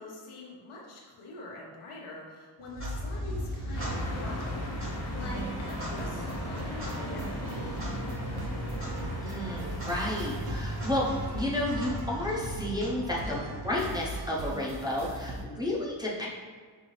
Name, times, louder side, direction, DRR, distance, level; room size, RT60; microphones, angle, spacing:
voice 1, 0.0-8.2, left 2 dB, 85° left, -3 dB, 1.1 m, -44 dB
Clock, 2.6-14.6, equal, 25° right, 1.1 m, -37 dB
sound 1, 3.7-11.5, left 2 dB, 35° left, 0.6 m, -39 dB
sound 2, 5.2-15.4, right 3 dB, 50° right, 0.5 m, -40 dB
voice 2, 9.2-11.1 11.3-16.3, left 1 dB, 10° right, -6 dB, 0.6 m, -32 dB
5.5 x 2.6 x 3.1 m, 1.6 s
wide cardioid pair, 140°, 48 cm